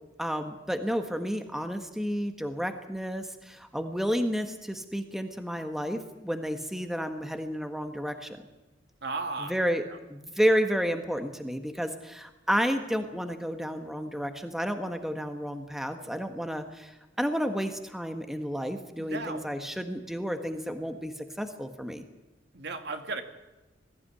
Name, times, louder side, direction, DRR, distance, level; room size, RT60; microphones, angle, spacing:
voice 1, 0.2-8.4 9.4-22.0, equal, ahead, 6 dB, 1.5 m, -31 dB
voice 2, 9.0-9.6 9.9-10.0 19.0-19.5 22.5-23.2, right 3 dB, 60° right, 6 dB, 2.4 m, -35 dB
21.0 x 15.0 x 9.8 m, 1.1 s
head